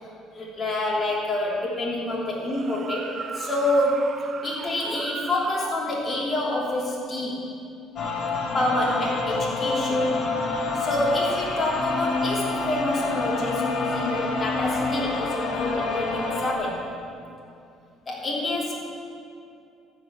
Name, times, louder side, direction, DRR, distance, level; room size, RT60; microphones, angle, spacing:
voice 1, 0.3-4.1 4.4-7.4 8.5-10.1 10.7-16.8 18.0-18.7, left 1 dB, 30° left, -5 dB, 3.2 m, -27 dB
sound 1, 2.4-5.8, right 6 dB, 45° right, 0.4 m, -36 dB
sound 2, 8.0-16.5, left 3 dB, 55° left, 1.6 m, -27 dB
14.5 x 5.6 x 8.1 m, 2.5 s
cardioid pair, 90°, 0 cm